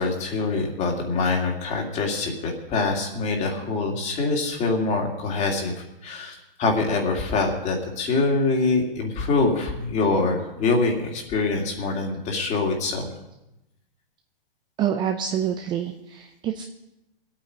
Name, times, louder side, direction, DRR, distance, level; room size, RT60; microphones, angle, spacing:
voice 1, 0.0-5.7 6.0-13.1, left 3 dB, 25° left, 2 dB, 2.6 m, -24 dB
voice 2, 14.8-16.6, right 9 dB, 15° right, 5 dB, 0.5 m, -27 dB
22.5 x 8.8 x 5.0 m, 0.90 s
hypercardioid pair, 140°, 29 cm